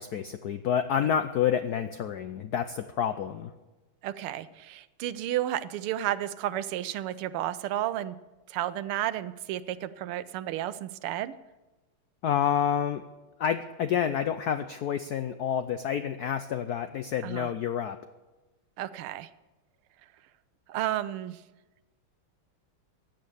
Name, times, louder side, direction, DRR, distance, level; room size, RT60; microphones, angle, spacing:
voice 1, 0.0-3.5 12.2-13.0 13.4-18.0, left 9 dB, 80° left, 10 dB, 0.8 m, -28 dB
voice 2, 4.0-8.1 8.5-11.3 17.2-17.5 18.8-19.3 20.7-21.4, right 12 dB, 85° right, 15 dB, 1.6 m, -32 dB
15.5 x 9.2 x 6.9 m, 1.1 s
omnidirectional pair, 2.4 m